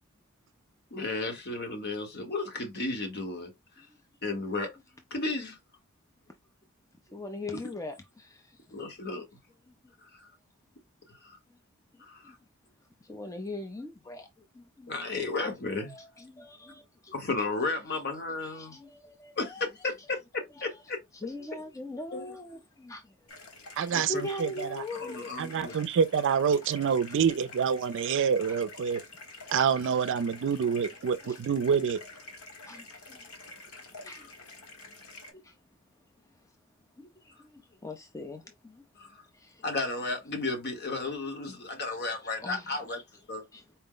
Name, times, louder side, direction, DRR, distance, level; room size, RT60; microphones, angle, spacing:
voice 1, 0.9-3.5 3.8-3.9 4.2-4.7 5.1-5.6 7.5-7.6 8.7-9.3 10.0-10.3 11.2-11.4 12.1-12.3 14.9-15.9 17.1-18.8 19.4-21.0 22.1-22.2 23.9-24.2 24.9-25.8 39.0-39.2 39.6-43.0 43.3-43.4, left 3 dB, 50° left, 1.1 m, -33 dB
voice 2, 7.1-8.6 11.1-11.2 12.2-12.3 13.0-14.3 14.5-14.9 15.8-17.1 18.4-19.7 21.1-23.1 23.7-25.3 25.7-25.8 31.2-31.4 32.7-33.3 34.0-34.4 35.4-35.6 37.0-38.8 39.3-39.6 42.0-43.0 43.5-43.6, left 2 dB, 15° left, 0.4 m, -41 dB
sound 1, 23.3-35.3, left 2 dB, 85° left, 1.2 m, -48 dB
voice 3, 23.8-24.8 25.4-29.0 29.5-32.0, right 7 dB, 60° right, 0.4 m, -27 dB
4.3 x 2.0 x 3.8 m
head